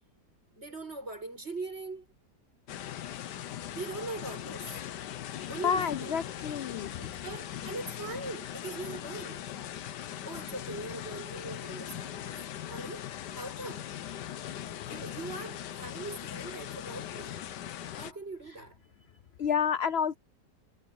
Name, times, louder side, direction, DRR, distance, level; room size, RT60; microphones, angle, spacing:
voice 1, 0.6-2.1 3.7-4.7 5.5-6.1 7.0-9.5 10.3-12.4 12.7-13.9 14.8-17.4 17.9-18.8, right 2 dB, 40° right, 7.3 m, -41 dB
sound 1, 2.7-18.1, left 11 dB, 85° left, 1.5 m, -40 dB
voice 2, 5.6-7.1 19.4-20.2, left 7 dB, 65° left, 0.6 m, -29 dB
omnidirectional pair, 1.8 m